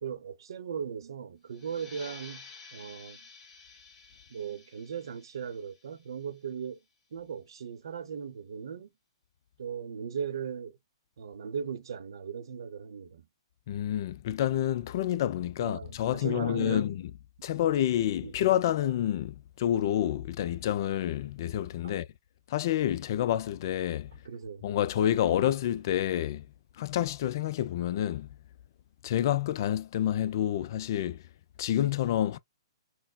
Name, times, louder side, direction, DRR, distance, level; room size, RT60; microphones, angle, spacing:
voice 1, 0.0-3.3 4.3-6.8 7.1-8.9 9.6-10.8 11.2-13.3 15.6-16.9 18.2-18.3 21.8-22.0 24.2-24.7, right 7 dB, 70° right, 0.7 m, -38 dB
sound 1, 1.5-6.8, left 4 dB, 15° left, 1.6 m, -52 dB
voice 2, 13.7-17.0 17.4-22.1 22.5-24.1 24.6-26.4 26.8-28.3 29.0-31.2 31.6-32.4, left 11 dB, 50° left, 0.4 m, -28 dB
4.2 x 2.0 x 2.2 m
hypercardioid pair, 130°, 3 cm